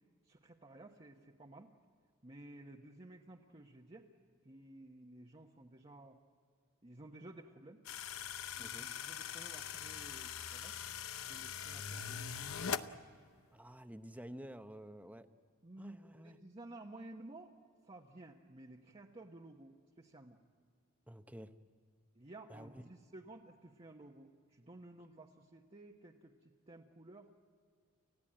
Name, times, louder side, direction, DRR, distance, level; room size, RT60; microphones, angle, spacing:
voice 1, 0.3-1.7 2.2-4.1 4.4-6.2 6.8-7.8 8.6-10.7 11.2-12.5 15.6-17.5 17.9-20.4 22.1-27.3, right 2 dB, 25° right, -1 dB, 1.1 m, -54 dB
sound 1, 7.9-12.9, left 8 dB, 75° left, 0.8 m, -42 dB
voice 2, 13.5-15.3 15.8-16.4 21.1-21.5 22.5-22.9, equal, 5° right, 9 dB, 0.8 m, -50 dB
29.5 x 15.5 x 8.8 m, 2.1 s
head